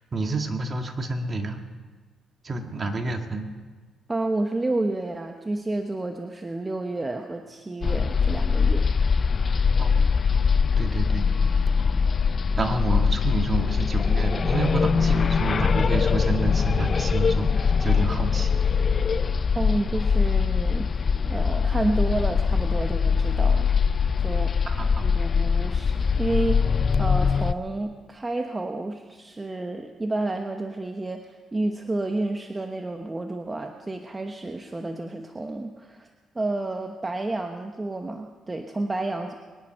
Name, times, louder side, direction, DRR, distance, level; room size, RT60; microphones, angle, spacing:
voice 1, 0.1-1.6 2.4-3.5 9.8-10.1 10.8-11.7 12.6-18.6 24.7-25.1, right 3 dB, 35° right, 4 dB, 1.8 m, -29 dB
voice 2, 4.1-8.9 19.5-23.8 24.2-24.5 25.0-26.7 27.0-36.1 36.3-39.3, right 2 dB, 20° right, 4 dB, 1.0 m, -30 dB
sound 1, 7.8-27.5, left 5 dB, 40° left, 0.5 m, -22 dB
23.0 x 10.5 x 5.6 m, 1.4 s
cardioid pair, 90°, 0 cm